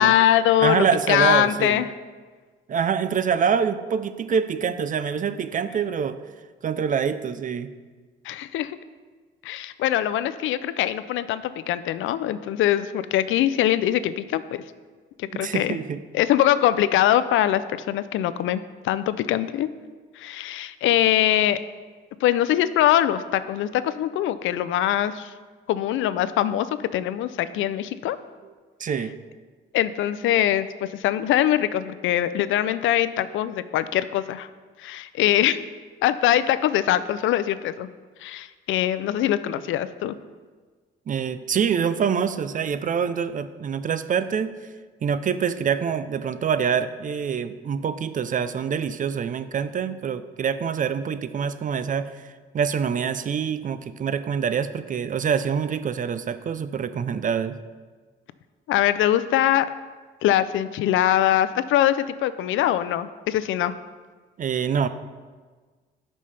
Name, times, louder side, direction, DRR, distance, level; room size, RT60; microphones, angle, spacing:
voice 1, 0.0-1.9 8.2-8.8 9.4-14.6 15.2-15.8 16.1-19.7 20.2-21.6 22.2-25.3 25.7-28.2 29.7-34.5 34.8-35.6 36.0-37.9 38.2-40.2 58.7-59.7 60.2-63.8, left 12 dB, 80° left, 14 dB, 0.5 m, -22 dB
voice 2, 0.6-1.8 2.7-6.2 6.6-7.7 15.3-16.0 28.4-28.5 28.8-29.1 41.1-44.5 45.0-57.6 64.4-64.9, right 7 dB, 40° right, 12 dB, 0.5 m, -25 dB
12.0 x 5.4 x 3.3 m, 1.4 s
cardioid pair, 90°, 20 cm